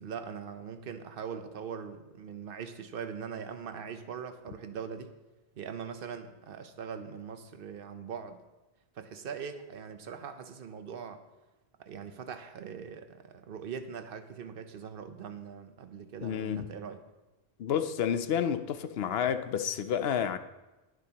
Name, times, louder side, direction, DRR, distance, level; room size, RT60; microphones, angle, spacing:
voice 1, 0.0-5.1 5.6-8.4 8.9-11.2 11.8-17.0, right 7 dB, 65° right, 1.0 m, -41 dB
voice 2, 16.2-16.7 17.6-20.4, left 8 dB, 80° left, 0.9 m, -30 dB
22.0 x 7.7 x 2.9 m
omnidirectional pair, 1.0 m